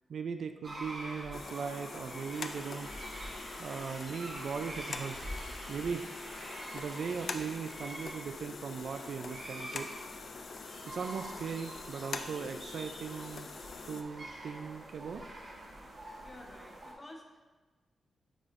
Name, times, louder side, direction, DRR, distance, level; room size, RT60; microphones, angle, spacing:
voice 1, 0.1-2.9 3.6-5.3 5.7-6.1 6.7-9.9 10.9-13.5 13.9-15.2, right 6 dB, 60° right, 7 dB, 0.3 m, -39 dB
sound 1, 0.6-16.9, right 1 dB, 35° right, 1.1 m, -47 dB
sound 2, 1.3-14.0, left 5 dB, 50° left, 0.4 m, -45 dB
sound 3, 2.4-8.1, equal, 20° right, 1.7 m, -49 dB
voice 2, 16.2-17.5, left 1 dB, 20° left, 2 dB, 0.7 m, -51 dB
9.3 x 4.1 x 2.5 m, 1.2 s
wide cardioid pair, 150°, 0 cm